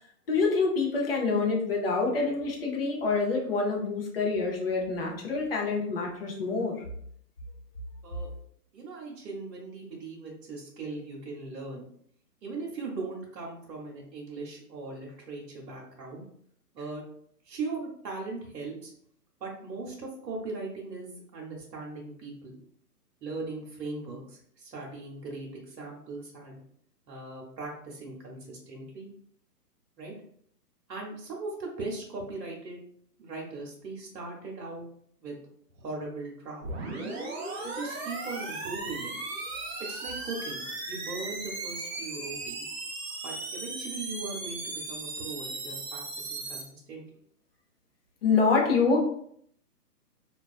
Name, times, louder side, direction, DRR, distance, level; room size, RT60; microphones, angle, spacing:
voice 1, 0.3-6.7 48.2-49.0, left 4 dB, 40° left, -1 dB, 0.5 m, -26 dB
voice 2, 8.7-11.9 12.4-16.2 16.7-17.0 17.4-18.9 19.4-22.6 23.2-26.6 27.1-29.1 30.0-30.1 30.9-32.8 33.2-34.9 35.2-35.4 35.7-36.6 37.6-39.1 39.8-42.7 43.2-46.0 46.3-47.0, right 3 dB, 90° right, -2 dB, 0.8 m, -39 dB
sound 1, 36.6-46.6, right 3 dB, 40° right, 0.6 m, -37 dB
2.3 x 2.3 x 2.3 m, 0.66 s
hypercardioid pair, 145°, 49 cm